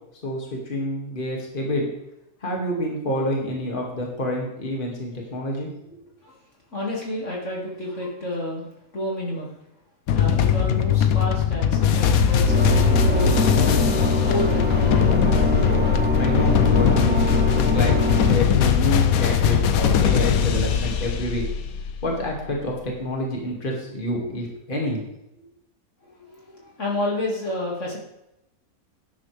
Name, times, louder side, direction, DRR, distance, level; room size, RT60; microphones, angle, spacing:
voice 1, 0.2-1.9 2.4-5.7 15.7-17.3 17.5-21.4 22.0-25.0, left 1 dB, 35° left, -1 dB, 2.3 m, -28 dB
voice 2, 6.7-9.6 10.1-13.3 14.2-15.2 26.0-28.0, left 1 dB, 50° left, -3 dB, 2.5 m, -30 dB
sound 1, 10.1-22.2, left 7 dB, 70° left, 1.1 m, -20 dB
sound 2, 12.5-18.4, right 1 dB, 5° right, 1.0 m, -26 dB
12.0 x 10.5 x 3.4 m, 0.87 s
omnidirectional pair, 1.6 m